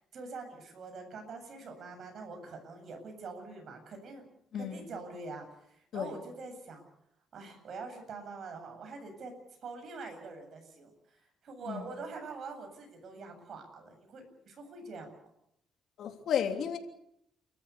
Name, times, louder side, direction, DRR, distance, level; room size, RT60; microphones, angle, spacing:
voice 1, 0.0-4.2 4.5-6.8 7.3-9.3 9.6-15.1, right 4 dB, 60° right, 5 dB, 7.9 m, -45 dB
voice 2, 4.5-4.9 5.9-6.2 11.7-11.9 16.0-16.8, left 8 dB, 70° left, 5 dB, 3.2 m, -33 dB
30.0 x 14.0 x 8.5 m, 0.77 s
cardioid pair, 90°, 0 cm